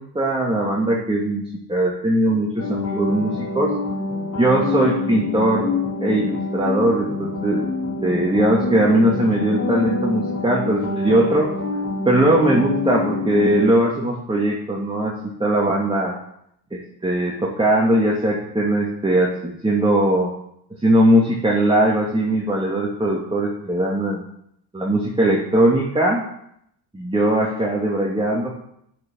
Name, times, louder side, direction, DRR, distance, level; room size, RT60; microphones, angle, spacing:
voice 1, 0.0-3.7 4.4-5.7 6.0-7.6 8.0-11.5 12.1-16.2 16.7-20.3 20.8-24.2 24.7-26.2 26.9-28.5, right 1 dB, 10° right, -3 dB, 2.6 m, -20 dB
sound 1, 2.6-13.7, left 3 dB, 40° left, 3.8 m, -26 dB
8.9 x 8.4 x 7.3 m, 0.74 s
hypercardioid pair, 60°, 49 cm